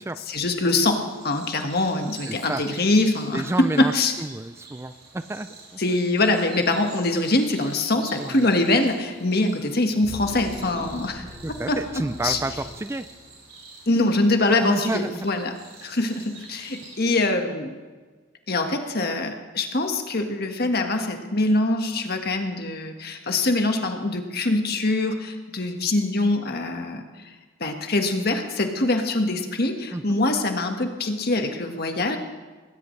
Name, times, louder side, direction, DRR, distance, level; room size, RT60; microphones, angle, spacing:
voice 1, 0.3-4.1 5.8-11.2 11.7-11.8 12.2-12.4 13.9-15.5 15.8-17.8 18.5-27.0 27.6-32.2, left 2 dB, 50° left, 4 dB, 1.6 m, -23 dB
sound 1, 0.6-17.3, right 3 dB, 50° right, 6.0 m, -46 dB
voice 2, 2.3-2.6 3.3-5.8 8.2-8.5 10.7-10.8 11.4-13.1 14.6-15.3 29.9-30.0, right 2 dB, 15° right, 11 dB, 0.4 m, -30 dB
sound 2, 10.0-13.5, left 1 dB, 35° right, 4.8 m, -41 dB
20.0 x 17.5 x 3.3 m, 1.4 s
head